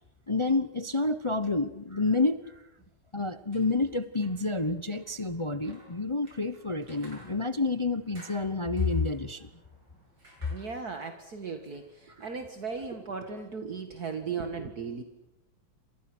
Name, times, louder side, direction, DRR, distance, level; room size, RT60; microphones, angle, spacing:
voice 1, 0.3-2.6 3.1-9.5 12.2-12.3, left 3 dB, 30° left, 12 dB, 0.6 m, -29 dB
sound 1, 3.3-13.4, right 1 dB, 75° right, 8.6 m, -58 dB
voice 2, 10.5-15.0, right 5 dB, 55° right, 6 dB, 2.3 m, -37 dB
29.0 x 27.0 x 6.2 m, 0.89 s
omnidirectional pair, 2.0 m